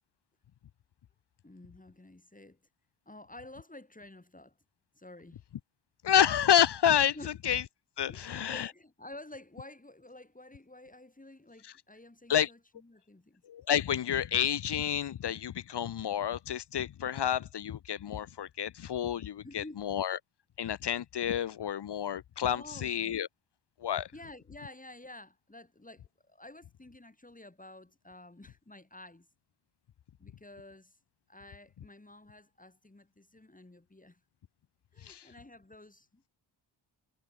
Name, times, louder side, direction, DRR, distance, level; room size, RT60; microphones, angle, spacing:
voice 1, 1.4-2.6 3.0-4.6 4.9-5.4 7.1-7.3 8.0-13.4 19.4-19.8 22.5-23.2 24.1-29.3 30.2-31.0 31.3-34.2 34.9-36.2, left 2 dB, 15° left, 4.8 m, -51 dB
voice 2, 6.0-7.1 7.4-7.6 8.0-8.7 12.3-12.5 13.4-20.2 20.6-23.3 23.8-24.1 35.0-35.3, left 9 dB, 60° left, 0.7 m, -29 dB
wide cardioid pair, 95°, 46 cm